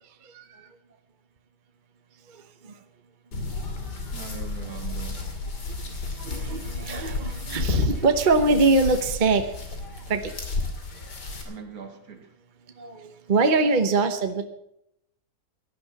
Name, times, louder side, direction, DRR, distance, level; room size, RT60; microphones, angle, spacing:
voice 1, 0.2-0.7 2.3-2.7 4.7-4.8 5.6-9.6 10.1-10.3 12.8-14.5, right 3 dB, 35° right, 1.0 m, -24 dB
sound 1, 3.3-11.4, left 3 dB, 85° left, 3.2 m, -32 dB
voice 2, 4.1-5.3 11.4-12.3, right 7 dB, 60° right, 2.3 m, -40 dB
17.5 x 11.5 x 6.0 m
omnidirectional pair, 1.8 m